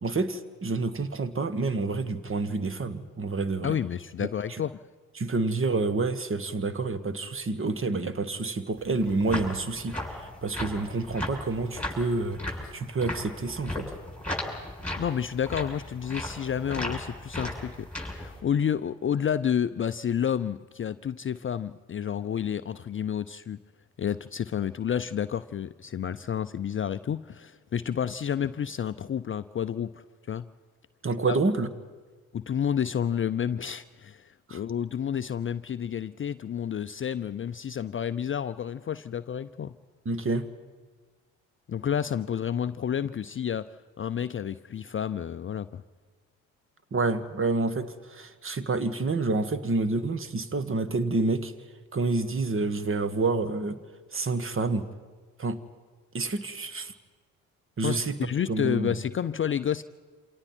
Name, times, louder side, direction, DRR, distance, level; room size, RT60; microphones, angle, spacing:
voice 1, 0.0-3.8 4.2-4.6 5.2-13.9 31.0-31.7 34.5-34.6 40.0-40.5 46.9-51.5 51.9-53.8 54.1-54.9 55.4-55.6 56.1-56.9 57.8-59.0, right 3 dB, 30° right, 1.6 m, -28 dB
voice 2, 3.6-4.7 15.0-23.6 24.0-30.4 31.3-31.4 32.3-39.7 41.7-43.7 44.0-45.8 57.8-59.8, left 8 dB, 30° left, 0.6 m, -30 dB
sound 1, 8.8-18.4, left 1 dB, 5° left, 7.5 m, -36 dB
28.0 x 27.0 x 4.5 m
hypercardioid pair, 50°, 41 cm